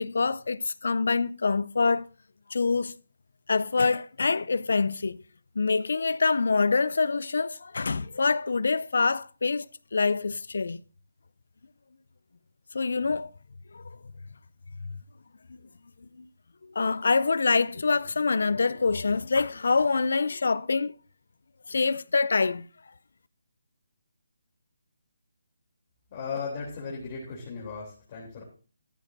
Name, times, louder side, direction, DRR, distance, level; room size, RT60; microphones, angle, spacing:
voice 1, 0.0-2.1 2.5-3.0 3.5-5.2 5.6-9.6 9.9-10.8 12.7-13.3 13.7-13.8 14.8-15.0 15.5-15.6 16.2-16.3 16.6-20.9 21.7-22.7, left 4 dB, 70° left, 0.4 m, -25 dB
voice 2, 26.1-28.4, left 5 dB, 35° left, 3.1 m, -36 dB
13.5 x 10.5 x 2.6 m
figure-of-eight pair, 155°, 0 cm